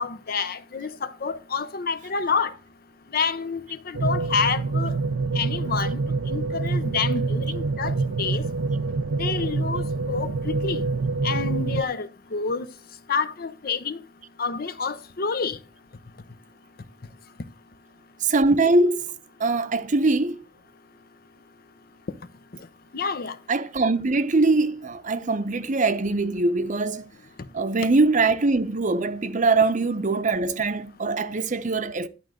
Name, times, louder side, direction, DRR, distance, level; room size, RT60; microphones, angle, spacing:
voice 1, 0.0-2.5 3.1-3.6 3.9-4.9 5.3-6.0 6.3-8.5 9.1-10.9 11.2-12.7 13.1-14.0 14.4-15.6 22.9-23.4, left 5 dB, 50° left, 0.7 m, -28 dB
sound 1, 3.9-11.8, right 3 dB, 85° right, 0.5 m, -26 dB
voice 2, 18.2-19.1 19.4-20.4 23.5-27.1 27.5-32.1, right 3 dB, 40° right, 0.7 m, -22 dB
11.0 x 3.8 x 7.7 m
head